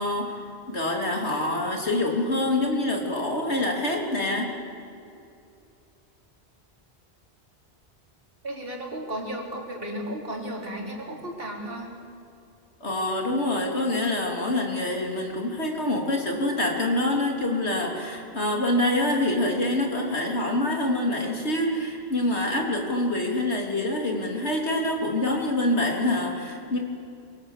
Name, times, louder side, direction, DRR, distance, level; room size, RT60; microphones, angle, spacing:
voice 1, 0.0-4.5 12.8-26.8, left 1 dB, 85° left, 1 dB, 3.6 m, -26 dB
voice 2, 8.4-11.9, right 1 dB, 60° right, -1 dB, 4.1 m, -34 dB
25.0 x 22.5 x 7.4 m, 2.6 s
omnidirectional pair, 1.1 m